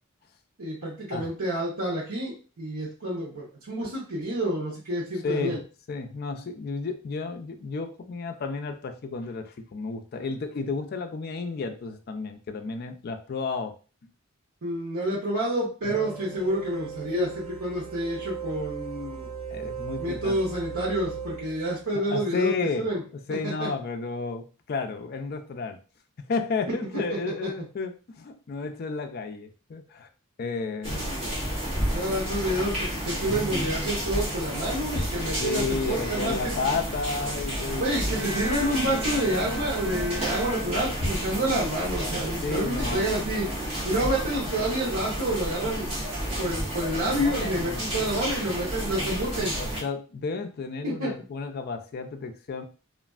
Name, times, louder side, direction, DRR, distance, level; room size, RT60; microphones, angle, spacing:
voice 1, 0.6-5.6 14.6-19.3 20.0-22.5 22.8-23.0 23.3-23.7 27.1-27.5 31.0-31.3 31.9-36.5 37.8-43.5 43.8-45.9 46.4-49.5 50.8-51.2, right 1 dB, 85° right, -6 dB, 0.9 m, -29 dB
voice 2, 5.2-13.7 14.0-14.1 15.8-16.0 19.5-20.4 21.9-25.8 26.2-30.1 30.4-31.1 31.6-31.8 35.4-38.3 42.4-43.1 47.0-47.9 49.6-52.6, left 4 dB, 45° left, 5 dB, 0.3 m, -32 dB
sound 1, 15.8-22.0, right 6 dB, 5° right, 1.5 m, -38 dB
sound 2, 30.8-49.8, equal, 25° right, 1.4 m, -31 dB
Bowed string instrument, 38.2-41.5, right 1 dB, 55° right, 0.4 m, -37 dB
3.1 x 2.4 x 2.4 m, 0.36 s
head